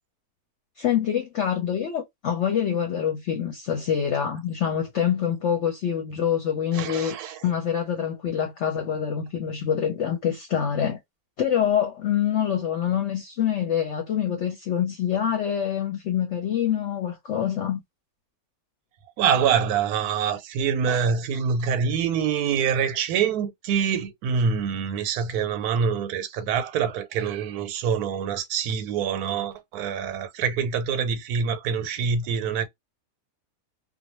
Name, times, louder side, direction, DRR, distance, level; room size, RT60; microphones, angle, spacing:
voice 1, 0.8-7.2 7.4-11.0 11.4-17.8, left 9 dB, 60° left, 0.8 m, -25 dB
voice 2, 6.7-7.4 19.2-32.6, right 7 dB, 85° right, 1.1 m, -25 dB
2.5 x 2.1 x 2.9 m
omnidirectional pair, 1.6 m